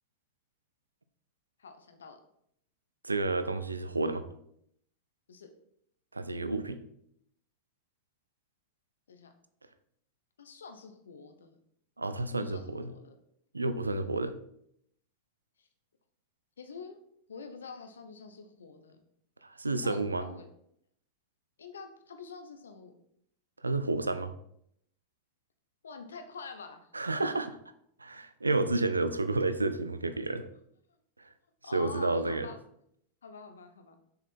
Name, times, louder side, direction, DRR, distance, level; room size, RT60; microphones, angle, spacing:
voice 1, 1.6-2.2 5.3-5.5 9.1-9.3 10.4-11.6 12.3-13.2 15.6-15.7 16.6-17.0 17.3-19.0 19.8-20.5 21.6-23.0 25.8-26.9 27.2-27.3 31.6-32.6 33.2-34.0, left 5 dB, 70° left, 7 dB, 1.0 m, -46 dB
voice 2, 3.0-4.3 6.1-6.8 12.0-12.9 13.5-14.3 19.4-20.2 23.6-24.3 26.9-27.5 28.0-30.5 31.2-31.3 31.7-32.5, right 2 dB, 80° right, 11 dB, 0.6 m, -30 dB
7.0 x 5.6 x 4.4 m, 0.71 s
figure-of-eight pair, 90°, 0 cm